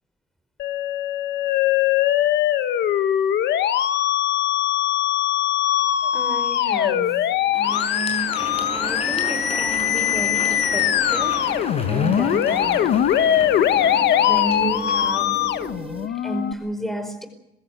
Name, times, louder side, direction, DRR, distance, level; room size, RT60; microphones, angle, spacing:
Musical instrument, 0.6-16.5, left 11 dB, 90° left, 1.2 m, -21 dB
voice 1, 6.0-7.2 7.5-8.3 8.7-11.4 11.8-12.9 14.2-17.3, right 1 dB, ahead, 8 dB, 4.9 m, -32 dB
Crowd, 7.4-15.9, left 2 dB, 35° left, 6.2 m, -35 dB
sound 1, 8.4-16.1, right 3 dB, 30° right, 1.8 m, -36 dB
23.0 x 15.5 x 9.4 m, 0.89 s
cardioid pair, 75°, 17 cm